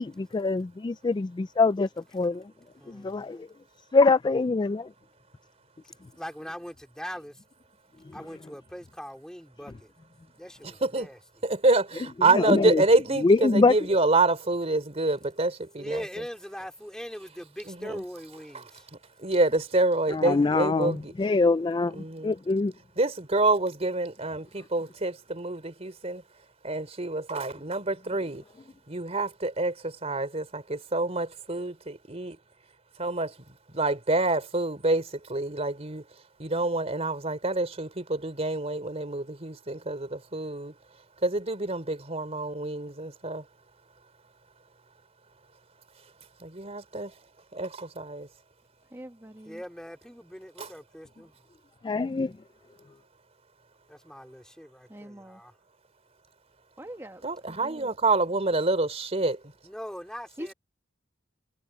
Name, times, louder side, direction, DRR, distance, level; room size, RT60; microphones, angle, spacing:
voice 1, 0.0-1.9 2.1-2.4 3.0-3.4 3.9-4.9 12.4-12.8 13.2-13.7 20.1-22.0 22.2-22.7 51.8-52.3, left 3 dB, 25° left, 0.3 m, -23 dB
voice 2, 2.8-3.5 6.2-7.4 8.1-9.9 10.4-11.2 15.8-18.9 49.4-51.3 53.9-55.5 59.6-60.5, equal, 5° left, 3.5 m, -41 dB
voice 3, 11.4-16.0 17.7-18.0 19.2-21.1 21.9-22.3 23.0-26.2 26.6-28.4 28.9-32.4 33.0-33.3 33.7-36.0 36.4-40.7 41.2-43.4 46.4-47.1 47.5-48.3 50.6-50.7 57.2-59.4, right 2 dB, 35° right, 3.3 m, -27 dB
voice 4, 48.9-49.6 54.9-55.4 56.8-57.9 60.4-60.5, equal, 15° right, 1.9 m, -43 dB
head